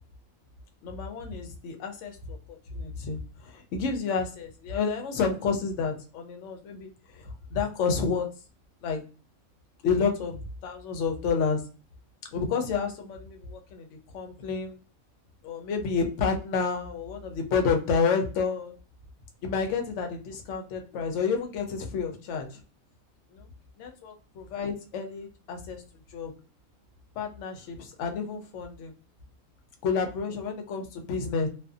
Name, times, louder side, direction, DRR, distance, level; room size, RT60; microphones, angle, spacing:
voice 1, 0.8-2.4 2.7-8.3 8.8-9.0 9.8-11.6 12.3-13.9 14.1-14.8 15.4-18.7 19.4-22.6 23.3-23.5 23.8-25.8 26.1-26.3 27.2-28.9 29.8-31.5, left 5 dB, 70° left, 4 dB, 0.9 m, -30 dB
2.5 x 2.3 x 2.3 m, 0.36 s
omnidirectional pair, 1.4 m